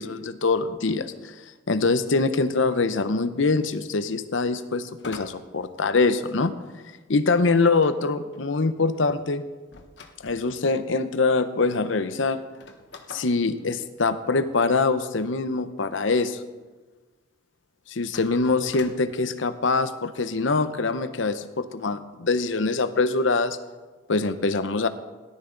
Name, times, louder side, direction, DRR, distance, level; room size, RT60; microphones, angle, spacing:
voice 1, 0.0-1.4 1.7-6.5 7.1-9.4 10.2-12.4 13.1-16.4 17.9-23.6 24.1-24.9, left 3 dB, 80° left, 11 dB, 0.8 m, -24 dB
sound 1, 5.0-6.5 7.8-10.6 11.4-11.5 11.7-11.8 12.4-14.6 18.0-19.1, left 3 dB, 65° left, 1.1 m, -46 dB
17.5 x 12.0 x 3.9 m, 1.3 s
head